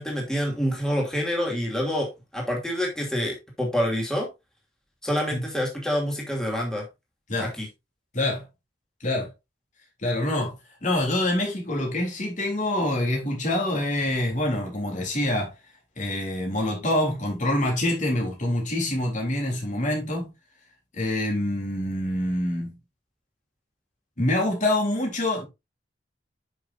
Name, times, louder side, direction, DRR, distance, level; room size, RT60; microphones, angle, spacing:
voice 1, 0.0-4.3 5.0-6.9 7.4-7.7, equal, 5° left, 2.5 m, -27 dB
voice 2, 8.1-8.5 9.0-9.3 10.0-10.5 10.8-15.5 16.0-20.3 20.9-22.8 24.2-25.4, left 1 dB, 40° left, 3.5 m, -26 dB
9.7 x 6.3 x 2.6 m
head